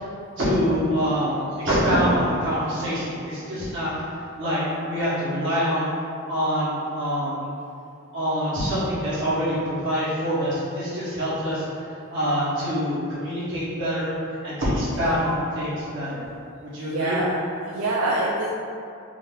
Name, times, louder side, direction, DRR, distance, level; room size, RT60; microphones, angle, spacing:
voice 1, 0.4-5.9 6.3-7.4 8.1-16.2 16.6-17.2, equal, 60° right, -10 dB, 1.2 m, -25 dB
voice 2, 16.8-17.3 17.6-18.5, right 2 dB, 80° right, -5 dB, 0.4 m, -26 dB
3.8 x 2.0 x 3.7 m, 2.6 s
head